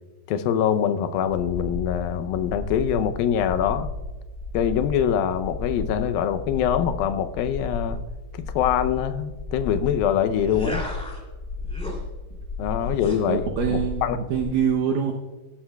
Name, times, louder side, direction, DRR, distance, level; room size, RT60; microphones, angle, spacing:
voice 1, 0.3-3.9 4.5-8.0 8.3-10.8 12.6-14.2, left 9 dB, 80° left, 10 dB, 2.4 m, -24 dB
sound 1, 1.2-14.5, left 3 dB, 55° left, 1.1 m, -34 dB
sound 2, 10.3-11.2 11.6-12.0 12.9-13.2, equal, ahead, 1.9 m, -35 dB
voice 2, 13.3-15.1, right 7 dB, 75° right, 1 dB, 2.2 m, -24 dB
18.5 x 11.5 x 2.3 m, 1.2 s
omnidirectional pair, 4.4 m